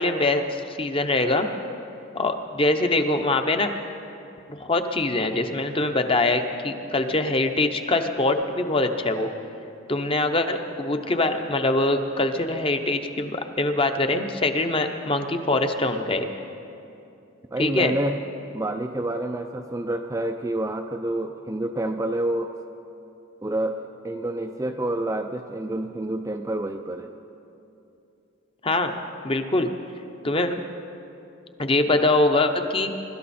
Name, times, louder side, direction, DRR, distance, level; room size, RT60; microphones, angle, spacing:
voice 1, 0.0-1.5 2.1-3.7 4.5-9.3 9.9-16.3 17.6-17.9 28.6-28.9 29.2-29.7 30.2-30.6 31.6-32.9, left 2 dB, 25° left, 6 dB, 0.7 m, -23 dB
voice 2, 17.5-18.2 18.5-22.6 23.4-27.1, right 1 dB, 15° right, 4 dB, 0.3 m, -28 dB
24.0 x 13.0 x 4.2 m, 2.8 s
head